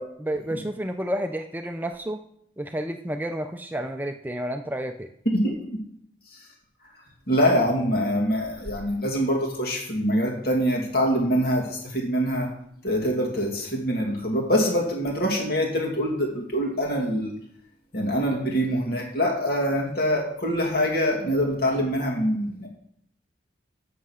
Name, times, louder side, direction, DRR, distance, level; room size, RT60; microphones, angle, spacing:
voice 1, 0.2-2.2 2.6-5.1, right 1 dB, 10° right, 6 dB, 0.5 m, -30 dB
voice 2, 5.3-5.8 7.3-12.5 12.8-17.3 17.9-22.7, equal, 55° left, 0 dB, 2.4 m, -24 dB
7.5 x 6.6 x 6.3 m, 0.68 s
head